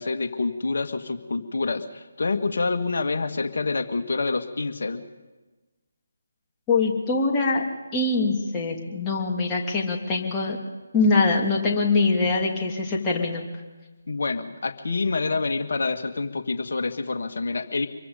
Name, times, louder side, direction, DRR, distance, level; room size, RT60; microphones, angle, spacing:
voice 1, 0.0-5.0 14.1-17.9, left 3 dB, 55° left, 7 dB, 1.8 m, -27 dB
voice 2, 6.7-7.6 7.9-10.6 10.9-13.4, left 3 dB, 15° left, -2 dB, 3.0 m, -23 dB
26.0 x 23.0 x 5.2 m, 1.2 s
figure-of-eight pair, 150°, 0 cm